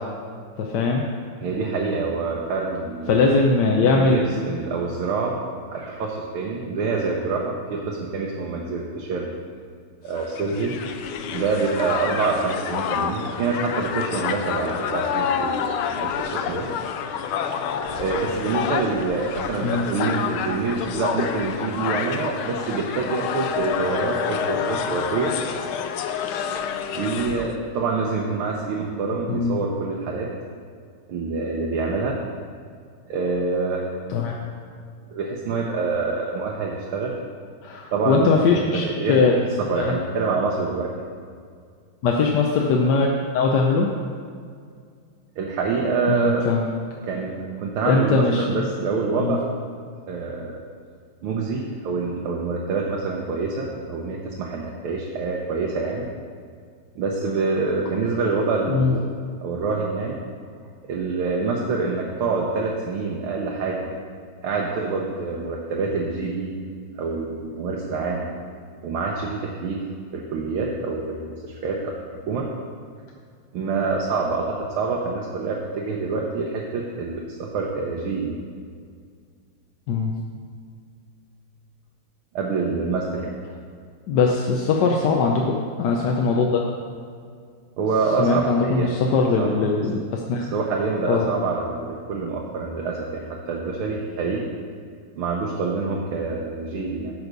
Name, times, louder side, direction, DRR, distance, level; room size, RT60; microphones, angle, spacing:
voice 1, 0.6-1.0 3.1-4.2 19.6-19.9 29.3-29.6 34.1-34.4 37.6-39.3 39.8-39.9 42.0-43.9 46.1-46.7 47.9-48.6 49.2-49.4 58.7-58.9 79.9-80.1 84.1-86.6 88.2-90.5 91.1-91.3, left 4 dB, 65° left, 0 dB, 1.2 m, -21 dB
voice 2, 1.4-3.2 3.8-5.4 5.7-9.3 10.0-10.8 11.3-16.7 18.0-25.3 26.9-30.3 31.1-32.2 33.1-33.8 35.1-37.1 37.9-41.1 45.4-46.5 47.0-49.5 50.1-50.6 51.2-56.1 57.0-59.0 59.4-60.2 60.9-63.9 64.4-66.6 67.0-68.3 68.8-69.8 70.1-72.5 73.5-78.4 82.4-83.3 87.8-88.9 89.4-89.5 90.4-94.4 95.2-97.1, right 4 dB, 80° right, -2 dB, 1.8 m, -26 dB
Crowd, 10.1-27.5, left 7 dB, 80° left, 1.5 m, -28 dB
10.5 x 5.4 x 6.7 m, 2.1 s
omnidirectional pair, 2.3 m